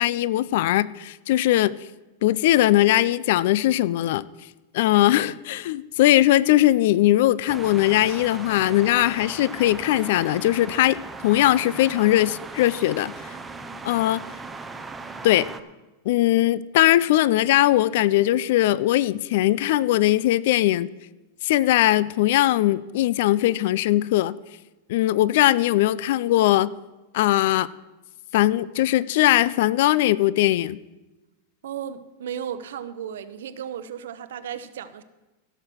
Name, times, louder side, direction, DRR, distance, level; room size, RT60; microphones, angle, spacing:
voice 1, 0.0-1.7 2.2-4.2 4.7-11.0 11.2-13.4 13.8-14.2 15.2-15.5 16.1-20.9 21.4-24.3 24.9-26.7 27.1-27.7 28.3-30.8, left 15 dB, 60° left, 20 dB, 0.3 m, -20 dB
sound 1, 7.5-15.6, right 4 dB, 10° right, 0.6 m, -38 dB
voice 2, 31.6-35.0, right 9 dB, 85° right, 11 dB, 0.8 m, -34 dB
16.0 x 6.6 x 6.2 m, 1.1 s
supercardioid pair, 160°, 0 cm